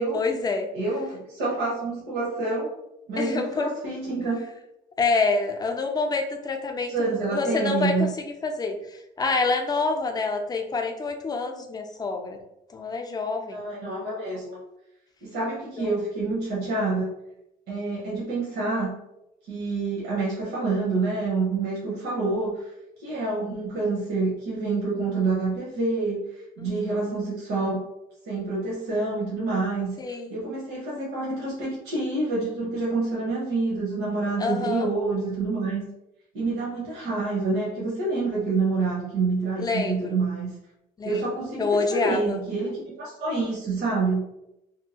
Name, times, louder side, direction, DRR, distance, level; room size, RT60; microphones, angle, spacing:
voice 1, 0.1-0.7 3.2-3.7 5.0-6.9 7.3-8.1 8.4-12.4 12.7-13.6 15.8-15.9 26.6-26.9 30.0-30.3 34.4-34.9 39.6-40.2 41.0-41.3 41.6-42.4, left 4 dB, 25° left, 4 dB, 0.4 m, -27 dB
voice 2, 0.7-2.7 3.1-4.4 6.9-8.1 13.5-14.6 15.2-17.1 17.7-18.9 19.5-22.7 23.0-27.8 28.3-29.9 30.3-35.8 36.3-40.5 41.0-44.3, right 3 dB, 80° right, -5 dB, 0.9 m, -27 dB
2.7 x 2.6 x 2.8 m, 0.86 s
cardioid pair, 110°, 17 cm